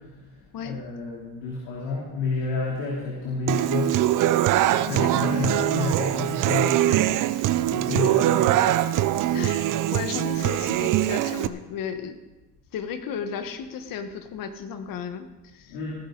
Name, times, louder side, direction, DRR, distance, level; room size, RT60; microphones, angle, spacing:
voice 1, 0.6-4.0 4.7-7.1 7.7-8.6 15.7-15.9, left 3 dB, 75° left, -4 dB, 3.2 m, -30 dB
Human voice / Acoustic guitar, 3.5-11.5, right 13 dB, 50° right, 0.7 m, -22 dB
voice 2, 4.9-5.2 7.9-8.1 9.3-12.2 12.7-15.8, left 7 dB, 55° left, 8 dB, 1.4 m, -34 dB
18.0 x 10.5 x 4.0 m, 1.1 s
supercardioid pair, 85°, 40 cm